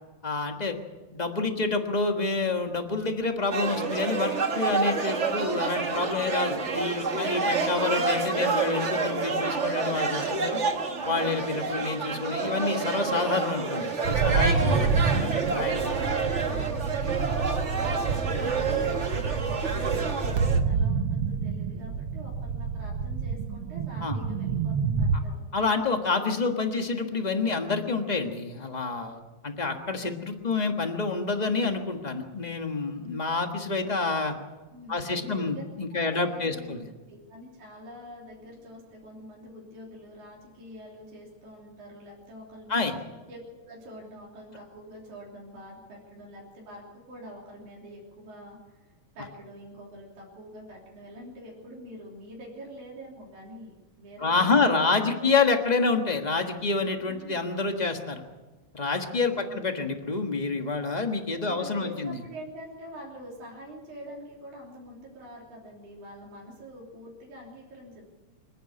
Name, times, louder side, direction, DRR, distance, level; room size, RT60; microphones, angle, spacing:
voice 1, 0.2-0.8 1.1-10.6 11.0-14.8 15.2-15.8 24.0-24.2 25.5-34.3 34.9-36.8 42.7-42.9 54.2-58.2 58.7-62.2, left 4 dB, 40° left, 4 dB, 0.6 m, -28 dB
sound 1, 3.5-20.6, right 4 dB, 35° right, 1.2 m, -28 dB
sound 2, 14.0-25.2, right 5 dB, 60° right, 1.7 m, -28 dB
voice 2, 14.5-25.4 34.7-35.6 35.9-42.8 43.3-55.3 57.1-57.4 59.2-59.8 61.4-68.1, equal, 85° right, -3 dB, 4.8 m, -45 dB
26.5 x 10.5 x 9.9 m, 1.2 s
omnidirectional pair, 3.4 m